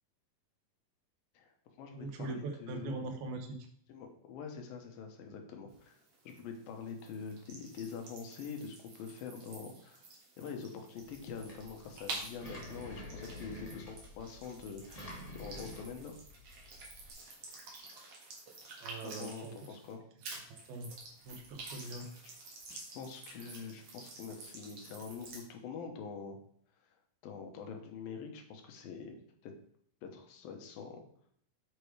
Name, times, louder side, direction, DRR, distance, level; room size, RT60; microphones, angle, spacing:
voice 1, 1.3-3.0 3.9-6.0 6.3-10.0 10.4-16.2 19.0-20.1 22.7-26.4 27.2-29.2 29.4-29.5 30.0-31.0, left 5 dB, 80° left, 4 dB, 2.8 m, -45 dB
voice 2, 1.9-3.6 18.8-19.5 20.5-20.9 21.2-22.1, right 3 dB, 85° right, 5 dB, 3.0 m, -41 dB
sound 1, 5.7-19.9 20.2-25.4, right 3 dB, 50° right, 2.4 m, -50 dB
Engine, 11.0-17.1, left 1 dB, 20° left, 1.0 m, -49 dB
7.5 x 4.9 x 4.8 m, 0.63 s
omnidirectional pair, 4.1 m